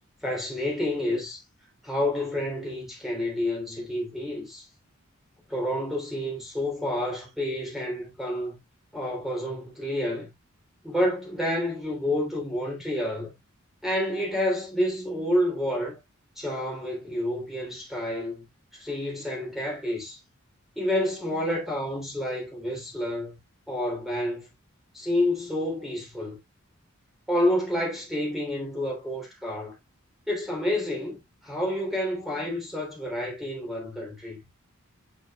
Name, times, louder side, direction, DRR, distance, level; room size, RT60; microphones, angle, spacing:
voice 1, 0.2-1.4 1.8-4.7 5.5-8.6 8.9-10.3 10.8-13.4 13.8-16.0 16.3-18.4 18.7-20.2 20.7-23.4 23.7-24.5 24.9-26.4 27.3-29.7 30.3-34.4, left 1 dB, ahead, 3.3 m, -29 dB
7.4 x 6.1 x 2.4 m
head